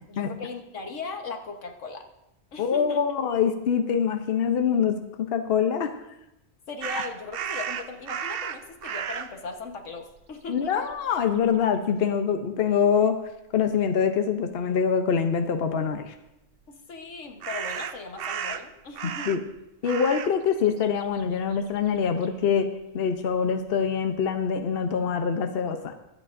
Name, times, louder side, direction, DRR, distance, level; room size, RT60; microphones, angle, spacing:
voice 1, 0.1-2.1 2.5-3.0 6.7-10.9 16.7-19.3, left 3 dB, 85° left, 3 dB, 1.5 m, -38 dB
voice 2, 2.6-5.9 10.5-13.2 13.5-16.1 19.3-19.4 19.8-25.9, left 7 dB, 60° left, 6 dB, 0.9 m, -24 dB
sound 1, 6.8-9.4 10.2-10.3 10.6-11.5 17.4-19.6 19.8-20.4 20.7-22.3, right 8 dB, 60° right, 0.7 m, -34 dB
24.0 x 8.5 x 2.6 m, 0.91 s
omnidirectional pair, 1.2 m